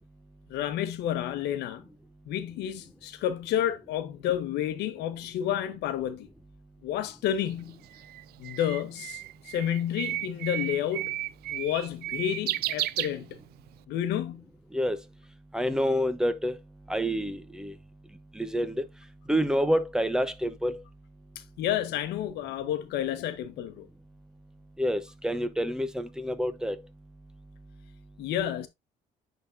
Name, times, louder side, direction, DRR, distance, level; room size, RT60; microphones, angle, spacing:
voice 1, 0.5-1.9 2.3-6.3 6.8-7.8 8.4-11.1 11.5-13.4 13.9-14.4 21.3-23.9 28.2-28.7, left 10 dB, 85° left, 1.1 m, -30 dB
Bird, 7.5-13.7, right 15 dB, 70° right, 0.4 m, -34 dB
voice 2, 15.5-16.6 16.9-17.7 18.3-18.8 19.3-20.8 24.8-26.8, equal, 5° right, 0.9 m, -27 dB
9.8 x 3.9 x 2.6 m
cardioid pair, 110°, 17 cm